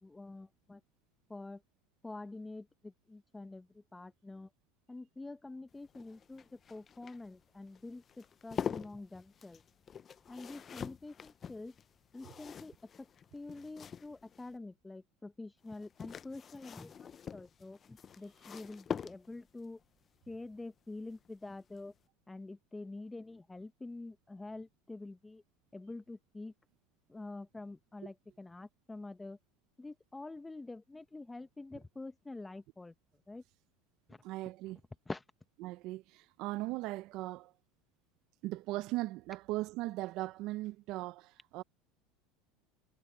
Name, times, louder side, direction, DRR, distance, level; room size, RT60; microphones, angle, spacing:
voice 1, 0.0-0.8 1.3-1.6 2.0-4.5 4.9-9.6 10.3-11.7 12.1-13.1 13.3-16.9 17.3-19.8 20.3-21.9 22.3-25.4 25.7-26.5 27.1-29.4 29.8-32.9 33.3-33.4 34.1-34.2 35.1-35.2, left 2 dB, 10° left, 1.5 m, -46 dB
sound 1, 5.7-14.5 15.7-19.6 21.2-21.5 21.8-21.9, left 7 dB, 35° left, 0.7 m, -45 dB
voice 2, 34.2-34.8 35.6-37.5 38.4-41.6, right 18 dB, 60° right, 0.7 m, -38 dB
hypercardioid pair, 95°, 0 cm